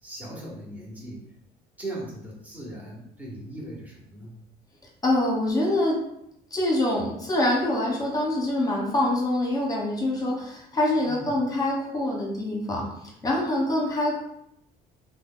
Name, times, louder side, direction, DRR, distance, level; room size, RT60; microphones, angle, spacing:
voice 1, 0.0-1.2 1.8-4.3 11.0-11.4, right 1 dB, 10° right, -5 dB, 1.0 m, -38 dB
voice 2, 5.0-6.0 6.5-12.9 13.2-14.2, left 1 dB, 20° left, -2 dB, 0.9 m, -25 dB
2.9 x 2.2 x 3.7 m, 0.77 s
cardioid pair, 110°, 17 cm